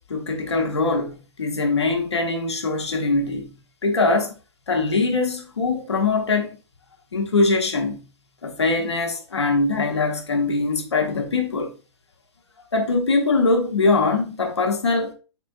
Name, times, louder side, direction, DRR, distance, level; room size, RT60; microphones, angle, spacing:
voice 1, 0.1-3.5 3.8-4.3 4.7-6.6 7.1-8.0 8.4-11.7 12.7-15.1, left 3 dB, 75° left, 1.1 m, -22 dB
4.3 x 4.2 x 2.4 m
figure-of-eight pair, 115°, 14 cm